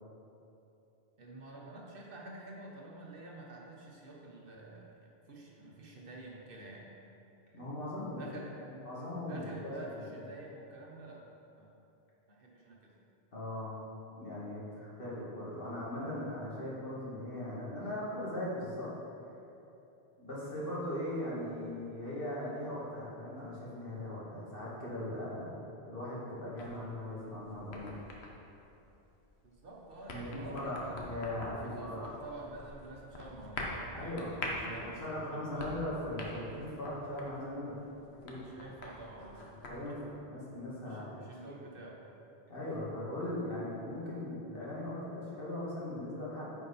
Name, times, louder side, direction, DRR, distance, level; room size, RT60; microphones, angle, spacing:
voice 1, 1.2-6.9 8.1-8.6 9.2-11.2 11.5-11.7 12.3-12.9 14.7-14.9 29.4-31.3 31.6-35.7 38.3-40.0 40.8-42.0, right 2 dB, 60° right, -2 dB, 1.1 m, -49 dB
voice 2, 7.5-10.2 13.3-13.8 14.2-18.9 20.2-27.9 30.0-30.8 31.1-32.1 33.9-37.8 38.1-38.4 39.7-41.2 42.5-46.5, left 1 dB, 55° left, -7 dB, 2.0 m, -39 dB
sound 1, 26.6-39.8, left 2 dB, 75° left, 1.2 m, -46 dB
9.6 x 4.6 x 4.1 m, 2.9 s
omnidirectional pair, 1.1 m